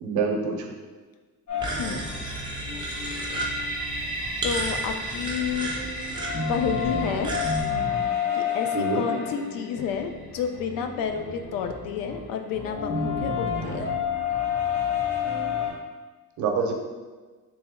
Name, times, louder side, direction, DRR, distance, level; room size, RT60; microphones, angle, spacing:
voice 1, 0.0-0.7 8.7-9.0 16.4-16.7, right 5 dB, 60° right, 2 dB, 0.6 m, -26 dB
sound 1, 1.5-4.7 5.0-15.7, left 6 dB, 55° left, 1.3 m, -30 dB
sound 2, 1.6-7.6, right 1 dB, 15° right, 0.3 m, -34 dB
sound 3, 1.8-11.5, right 1 dB, 25° left, 0.6 m, -37 dB
voice 2, 4.4-5.7 6.5-7.3 8.3-13.9, left 7 dB, 80° left, 6 dB, 0.5 m, -30 dB
3.4 x 3.0 x 3.5 m, 1.3 s
cardioid pair, 175°, 34 cm